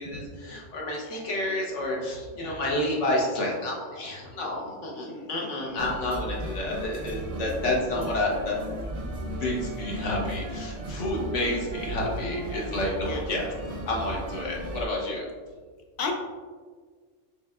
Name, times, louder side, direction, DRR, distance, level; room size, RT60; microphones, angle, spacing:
voice 1, 0.0-8.6 8.9-9.1 9.4-13.4 13.9-15.3, left 1 dB, 75° left, -2 dB, 1.3 m, -30 dB
voice 2, 2.3-2.8 4.6-5.8 9.2-9.6 11.4-11.5 12.4-12.7 13.1-13.2 16.0-16.1, left 4 dB, 60° left, 2 dB, 0.8 m, -39 dB
sound 1, 5.8-14.9, right 1 dB, 45° right, 0.5 m, -35 dB
6.1 x 3.2 x 2.3 m, 1.5 s
omnidirectional pair, 1.3 m